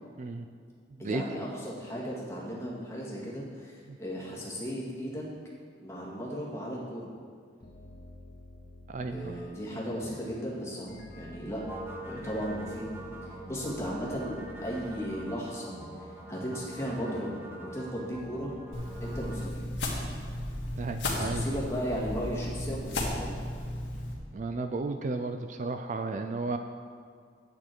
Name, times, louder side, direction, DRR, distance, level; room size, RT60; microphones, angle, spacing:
voice 1, 1.0-3.7 4.0-5.2 5.8-7.1 9.0-11.6 12.1-12.9 13.2-15.7 16.3-18.5 19.0-19.6 21.1-23.4, equal, 15° left, -5 dB, 1.9 m, -36 dB
sound 1, 7.6-19.2, equal, 55° left, 1.5 m, -50 dB
voice 2, 8.9-9.4 20.8-21.5 24.3-26.6, right 3 dB, 40° right, 7 dB, 0.4 m, -33 dB
sound 2, 11.6-19.5, right 1 dB, 10° right, 0.7 m, -44 dB
sound 3, 18.7-24.1, left 1 dB, 80° left, 1.8 m, -34 dB
9.7 x 8.7 x 4.5 m, 2.1 s
head